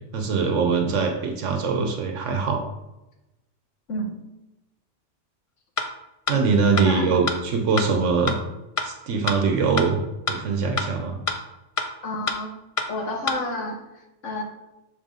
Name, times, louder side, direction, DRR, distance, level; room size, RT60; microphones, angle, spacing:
voice 1, 0.1-2.6 6.3-8.3 8.8-10.0 10.3-11.2, right 5 dB, 85° right, 3 dB, 1.2 m, -22 dB
voice 2, 3.9-4.2 6.8-7.2 12.0-12.5 12.9-14.4, left 1 dB, 80° left, 1 dB, 1.6 m, -30 dB
sound 1, 5.8-5.9 6.3-6.4 6.8-6.9 7.3-7.4 7.8-7.9 8.3-8.4 8.8-8.9 9.3-9.4 9.8-9.9 10.3-10.4 10.8-10.9 11.3-11.4 11.8-11.9 12.3-12.4 12.8-12.9 13.3-13.4, left 4 dB, 45° left, 0.4 m, -25 dB
7.2 x 4.1 x 3.8 m, 0.96 s
omnidirectional pair, 1.2 m